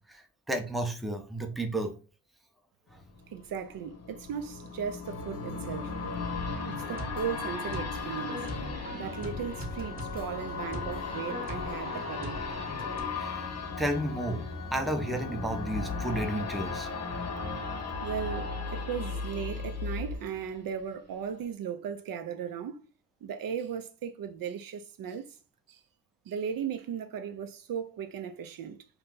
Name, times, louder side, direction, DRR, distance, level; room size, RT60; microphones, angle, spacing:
voice 1, 0.1-1.9 2.9-3.0 13.1-13.5 13.8-16.9, right 1 dB, ahead, 0.5 m, -32 dB
sound 1, 3.0-20.8 21.2-21.3, left 4 dB, 45° left, 0.7 m, -38 dB
voice 2, 3.3-6.0 6.7-8.5 8.9-12.4 18.0-22.8 23.2-25.4 25.7-25.8 26.3-28.9, right 7 dB, 65° right, 0.5 m, -37 dB
sound 2, 5.0-20.2, left 4 dB, 80° left, 0.7 m, -40 dB
sound 3, 6.3-13.0, equal, 25° right, 0.9 m, -41 dB
2.7 x 2.2 x 3.7 m
cardioid pair, 90°, 38 cm